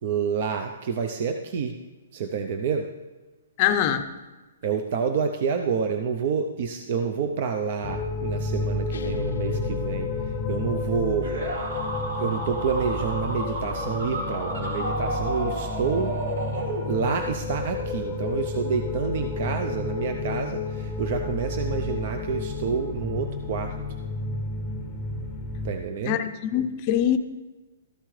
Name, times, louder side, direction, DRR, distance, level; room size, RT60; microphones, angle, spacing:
voice 1, 0.0-1.7 2.1-2.9 4.6-11.3 12.2-16.2 16.9-23.7 25.6-26.2, right 6 dB, 40° right, 5 dB, 0.6 m, -28 dB
voice 2, 3.6-4.1 26.1-27.2, left 10 dB, 30° left, 9 dB, 0.6 m, -23 dB
sound 1, 7.8-25.7, left 3 dB, 5° left, 0.9 m, -31 dB
sound 2, 8.9-11.5, left 7 dB, 75° left, 0.5 m, -35 dB
sound 3, 11.2-17.3, right 1 dB, 70° right, 2.4 m, -32 dB
13.5 x 11.5 x 3.3 m, 1.2 s
hypercardioid pair, 165°, 0 cm